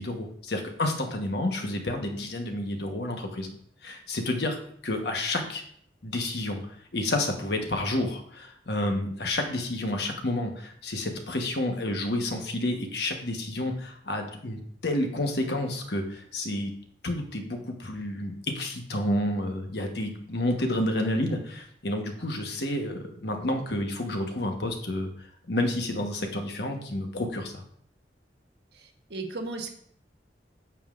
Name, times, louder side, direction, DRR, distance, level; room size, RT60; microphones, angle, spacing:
voice 1, 0.0-3.5 3.8-4.6 4.8-5.6 6.0-6.6 6.9-16.7 17.0-27.6, left 1 dB, 70° left, 3 dB, 1.2 m, -30 dB
voice 2, 28.7-29.7, right 3 dB, 80° right, 3 dB, 1.3 m, -36 dB
8.8 x 7.1 x 2.5 m, 0.64 s
head